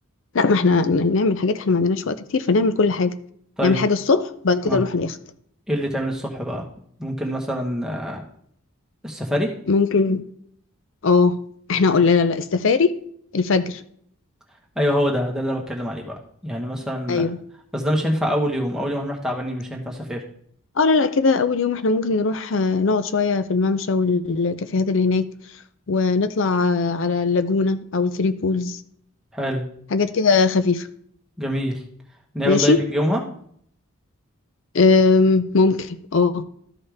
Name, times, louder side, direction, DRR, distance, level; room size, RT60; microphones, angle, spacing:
voice 1, 0.3-3.1 3.6-5.1 9.7-10.2 11.0-11.4 11.7-12.9 13.3-13.8 17.1-17.4 20.8-25.2 25.9-28.8 29.9-30.9 32.5-32.8 34.7-36.4, left 4 dB, 60° left, 12 dB, 0.5 m, -19 dB
voice 2, 5.7-6.6 7.0-8.2 9.0-9.5 14.7-16.1 16.4-17.2 17.7-20.2 29.3-29.6 31.4-31.8 32.3-33.2, equal, 5° right, -1 dB, 1.3 m, -25 dB
13.0 x 5.5 x 3.5 m, 0.64 s
head